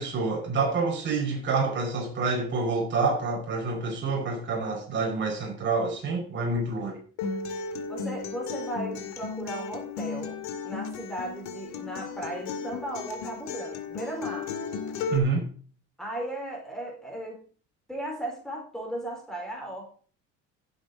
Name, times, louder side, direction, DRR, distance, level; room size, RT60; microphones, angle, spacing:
voice 1, 0.0-7.0 15.1-15.5, right 4 dB, 40° right, 5.3 m, -27 dB
Acoustic guitar, 7.2-15.2, left 5 dB, 65° left, 2.4 m, -35 dB
voice 2, 7.9-10.4 10.6-14.5 16.0-17.4 17.9-19.8, right 1 dB, ahead, 4.5 m, -36 dB
16.0 x 8.1 x 4.0 m
cardioid pair, 135°, 30 cm